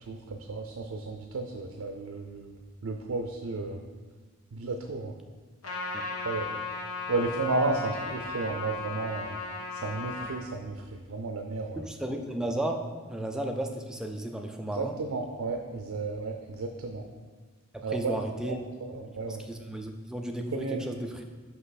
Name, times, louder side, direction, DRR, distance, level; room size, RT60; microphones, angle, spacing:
voice 1, 0.0-3.8 4.5-5.1 6.2-6.5 7.1-9.4 9.7-11.8 14.7-17.0 17.8-18.2 18.4-19.4 20.5-20.8, right 3 dB, 70° right, 4 dB, 0.5 m, -33 dB
Trumpet, 5.6-10.3, left 4 dB, 75° left, 1.3 m, -36 dB
voice 2, 11.8-14.9 17.7-18.6 18.9-21.2, right 1 dB, 5° right, 3 dB, 0.4 m, -34 dB
5.5 x 5.4 x 4.1 m, 1.4 s
head